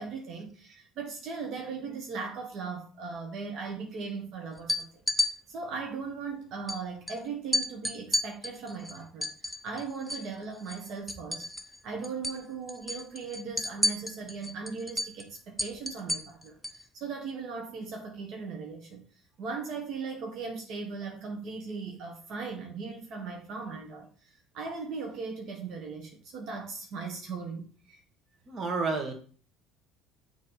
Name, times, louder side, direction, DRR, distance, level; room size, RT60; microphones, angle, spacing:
voice 1, 0.0-5.0 5.5-11.5 11.8-19.1 19.4-28.0, right 4 dB, 65° right, 1 dB, 1.5 m, -38 dB
sound 1, 4.6-5.3 6.7-6.8 7.1-7.2 7.5-10.3 10.6-11.8 12.0-12.4 12.7-16.8, left 1 dB, 5° left, 0.8 m, -31 dB
voice 2, 28.5-29.1, right 4 dB, 40° right, 2 dB, 1.8 m, -30 dB
6.9 x 3.5 x 5.7 m, 0.43 s
supercardioid pair, 90°, 0 cm